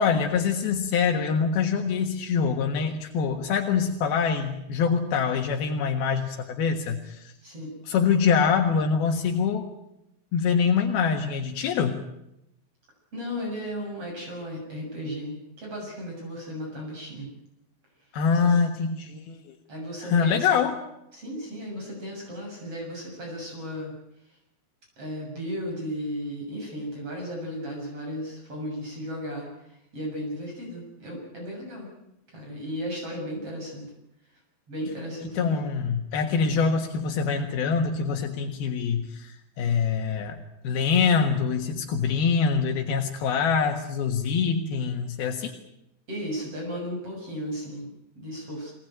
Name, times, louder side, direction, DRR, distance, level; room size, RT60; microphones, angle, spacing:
voice 1, 0.0-7.3 7.9-9.7 10.3-12.0 18.1-19.6 20.0-20.8 35.3-45.5, left 6 dB, 80° left, 3 dB, 3.5 m, -24 dB
voice 2, 7.4-7.7 13.1-17.3 18.3-18.6 19.7-20.5 21.1-23.9 25.0-31.9 32.3-33.9 34.7-35.7 46.1-47.9 48.2-48.7, equal, 35° right, 0 dB, 7.8 m, -35 dB
24.5 x 19.5 x 9.1 m, 0.85 s
omnidirectional pair, 4.3 m